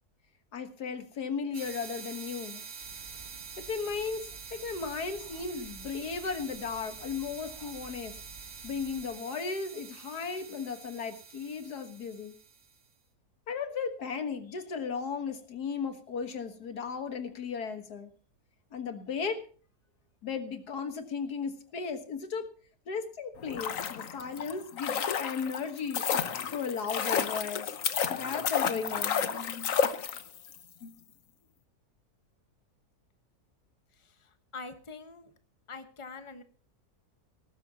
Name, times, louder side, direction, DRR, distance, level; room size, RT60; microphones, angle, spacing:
voice 1, 0.5-2.6 3.7-4.2 4.5-8.1 8.6-12.3 13.5-18.1 18.7-19.4 20.2-22.5 22.9-26.0 26.5-27.7 28.2-29.2, left 5 dB, 90° left, 8 dB, 2.0 m, -35 dB
sound 1, 1.5-12.8, right 6 dB, 70° right, 2.2 m, -46 dB
sound 2, 2.8-9.1, right 1 dB, 30° right, 2.1 m, -54 dB
sound 3, 23.4-30.6 30.8-30.9, left 7 dB, 60° left, 1.3 m, -31 dB
voice 2, 33.9-35.3 35.7-36.4, left 4 dB, 20° left, 8 dB, 1.2 m, -45 dB
18.5 x 14.5 x 2.9 m, 0.42 s
omnidirectional pair, 1.6 m